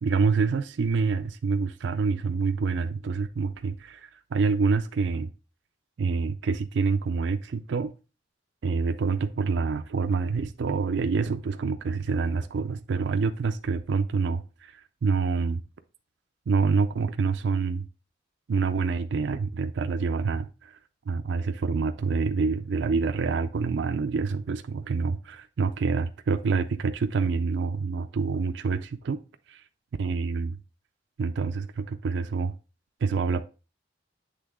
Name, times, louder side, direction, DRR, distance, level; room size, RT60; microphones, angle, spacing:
voice 1, 0.0-5.3 6.0-7.9 8.6-15.6 16.5-17.8 18.5-20.8 21.1-29.2 29.5-29.6 30.0-30.6 31.2-32.5 33.0-33.4, right 4 dB, 65° right, 0.4 m, -27 dB
7.8 x 3.5 x 3.6 m
head